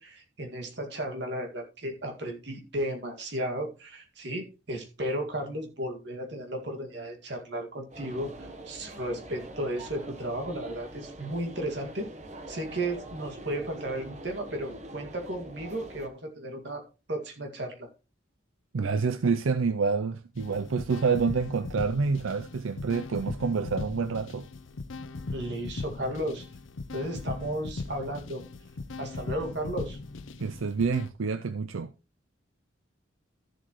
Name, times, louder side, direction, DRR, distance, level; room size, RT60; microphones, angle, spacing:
voice 1, 0.0-12.1 12.5-16.8 17.1-17.9 25.3-26.5 26.9-28.4 29.0-30.0, right 1 dB, 60° right, 2.1 m, -34 dB
sound 1, 7.9-16.1, right 1 dB, 35° right, 1.1 m, -44 dB
voice 2, 18.7-24.4 30.4-31.9, right 5 dB, 90° right, 0.5 m, -28 dB
sound 2, 20.4-31.1, left 3 dB, 80° left, 0.6 m, -39 dB
13.0 x 7.4 x 3.1 m
head